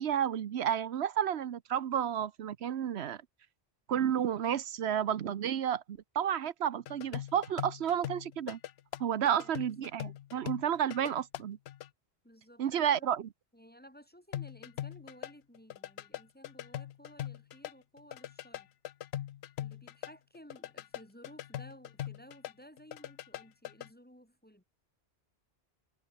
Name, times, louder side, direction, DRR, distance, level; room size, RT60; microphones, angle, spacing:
voice 1, 0.0-3.2 3.9-8.6 9.0-11.6 12.6-13.2, right 9 dB, 90° right, 1.1 m, -31 dB
sound 1, 6.9-11.9 14.3-17.7 18.0-22.5 22.8-23.9, left 12 dB, 80° left, 0.9 m, -41 dB
voice 2, 9.0-9.5 12.2-13.1 13.5-18.7 19.6-24.6, equal, 10° left, 3.4 m, -56 dB
omnidirectional pair, 1.1 m